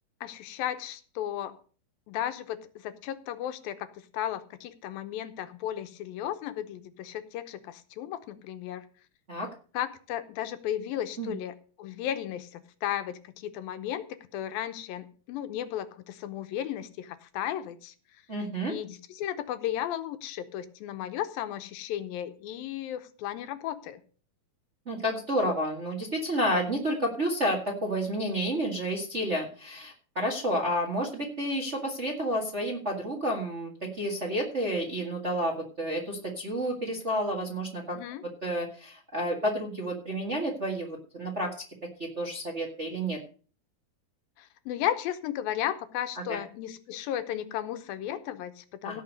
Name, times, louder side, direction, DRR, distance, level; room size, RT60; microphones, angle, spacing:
voice 1, 0.2-1.6 2.1-3.9 4.1-8.8 9.7-17.9 18.7-24.0 37.9-38.2 44.4-49.0, left 11 dB, 80° left, 11 dB, 2.6 m, -34 dB
voice 2, 18.3-18.7 24.8-38.0 38.4-41.5 42.0-43.2 46.3-46.4 48.8-49.0, equal, 30° right, 0 dB, 1.3 m, -30 dB
16.5 x 5.6 x 6.6 m, 0.40 s
omnidirectional pair, 4.2 m